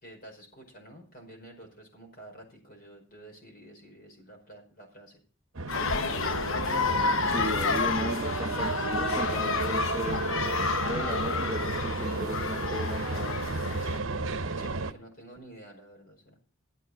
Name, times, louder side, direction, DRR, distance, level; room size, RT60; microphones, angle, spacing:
voice 1, 0.0-5.2 14.6-16.4, right 1 dB, 45° left, 2 dB, 5.2 m, -50 dB
sound 1, 5.6-14.9, right 3 dB, 65° right, 0.9 m, -32 dB
sound 2, 5.7-14.0, left 5 dB, 70° left, 0.9 m, -30 dB
voice 2, 7.2-10.5 10.8-13.3, equal, 15° right, 2 dB, 1.1 m, -36 dB
14.0 x 8.1 x 6.3 m, 0.41 s
head